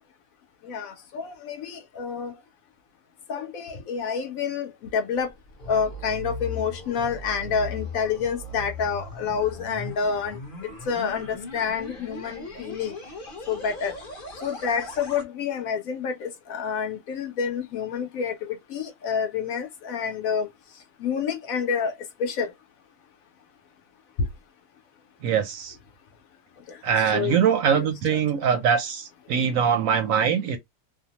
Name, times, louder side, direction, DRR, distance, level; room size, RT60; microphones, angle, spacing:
voice 1, 0.6-2.3 3.3-5.3 5.7-10.4 10.9-12.9 13.5-13.9 14.4-20.5 21.0-21.9 22.2-22.5 24.2-24.3 26.7-26.8 27.1-27.4 27.7-27.9, left 6 dB, 65° left, 1.0 m, -28 dB
sound 1, 5.1-15.2, left 2 dB, 40° left, 0.9 m, -38 dB
voice 2, 25.2-25.8 26.8-30.6, right 7 dB, 70° right, 0.9 m, -22 dB
2.7 x 2.1 x 2.8 m
omnidirectional pair, 1.7 m